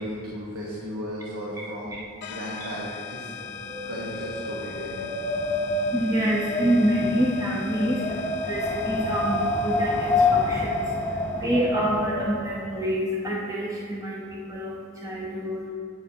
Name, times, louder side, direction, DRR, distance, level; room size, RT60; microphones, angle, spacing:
voice 1, 0.0-1.9 2.3-3.4 3.9-5.1, equal, 65° right, -5 dB, 1.0 m, -35 dB
sound 1, 2.2-11.6, left 7 dB, 50° left, 0.4 m, -41 dB
Wind, 3.4-12.6, left 2 dB, 10° left, 1.4 m, -28 dB
voice 2, 5.3-15.6, equal, 15° right, -4 dB, 0.6 m, -27 dB
8.2 x 6.9 x 2.7 m, 2.5 s
head